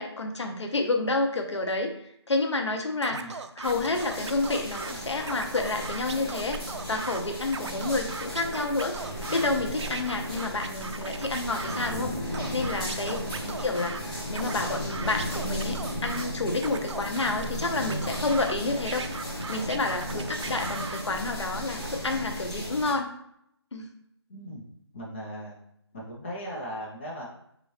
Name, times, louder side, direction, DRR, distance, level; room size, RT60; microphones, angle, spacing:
voice 1, 0.0-1.9 2.3-6.6 6.9-8.9 9.3-19.1 19.5-23.1 23.7-23.9, left 2 dB, 80° left, 4 dB, 0.8 m, -29 dB
Scratching (performance technique), 3.0-4.9 5.2-7.2 7.5-9.5 9.8-11.9 12.3-14.0 14.3-16.3 16.6-18.5 18.9-21.0, right 5 dB, 85° right, 0.4 m, -38 dB
sound 1, 3.6-22.9, equal, ahead, 0.5 m, -35 dB
voice 2, 13.2-13.6 20.1-20.7 24.3-24.7 24.9-25.6 25.9-27.2, equal, 25° left, -5 dB, 0.9 m, -39 dB
4.1 x 2.5 x 3.2 m, 0.74 s
figure-of-eight pair, 170°, 15 cm